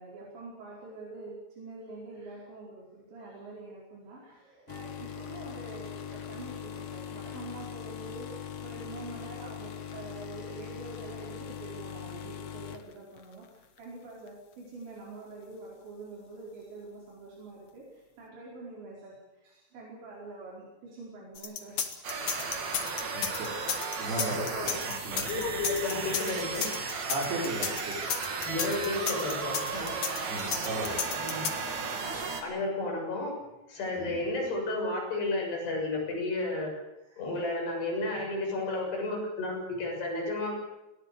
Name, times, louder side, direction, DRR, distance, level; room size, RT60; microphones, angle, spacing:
voice 1, 0.0-22.3 22.9-23.3, right 2 dB, 80° right, -4 dB, 7.0 m, -46 dB
sound 1, 4.7-13.8 14.3-14.5 15.4-15.5, left 9 dB, 90° left, 1.3 m, -41 dB
sound 2, 21.4-31.5, left 8 dB, 50° left, 2.9 m, -33 dB
sound 3, 22.0-32.4, right 4 dB, 45° right, 3.4 m, -35 dB
voice 2, 23.1-23.5 24.0-25.3 27.1-28.1 30.3-31.0 34.0-34.2, right 2 dB, 60° right, -5 dB, 7.0 m, -35 dB
voice 3, 25.1-26.7 28.4-29.9 31.1-31.5 32.4-33.3 33.7-36.7 37.2-40.5, left 2 dB, 65° left, 0 dB, 9.1 m, -32 dB
22.0 x 18.0 x 8.5 m, 0.99 s
omnidirectional pair, 5.1 m